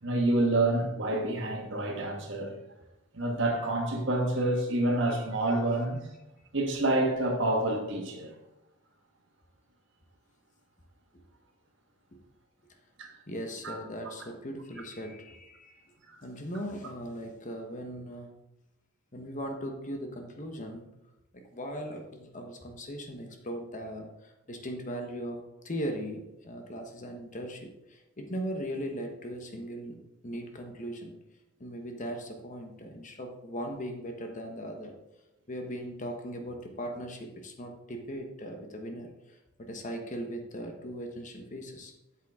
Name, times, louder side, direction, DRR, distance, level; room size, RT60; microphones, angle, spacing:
voice 1, 0.0-2.5 3.1-6.1 6.5-8.3 13.0-13.1 13.6-13.7, right 2 dB, 65° right, 1.6 m, -28 dB
voice 2, 13.3-15.9 16.2-18.3 19.1-20.9 21.3-25.4 25.6-30.0 30.2-31.1 31.6-34.9 35.5-41.9, equal, 40° left, 1.1 m, -39 dB
8.3 x 7.4 x 3.6 m
head